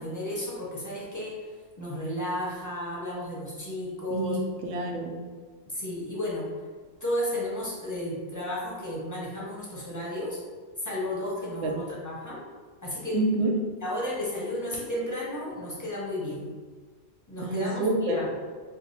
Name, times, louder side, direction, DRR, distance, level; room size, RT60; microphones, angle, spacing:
voice 1, 0.0-4.4 5.7-6.5 7.0-10.4 10.8-12.4 12.8-13.2 13.8-16.5 17.3-18.3, left 1 dB, 20° left, -6 dB, 0.7 m, -33 dB
voice 2, 4.1-5.2 11.6-11.7 13.1-13.6 17.4-18.2, right 2 dB, 90° right, 2 dB, 0.9 m, -27 dB
3.3 x 2.1 x 4.0 m, 1.5 s
omnidirectional pair, 1.1 m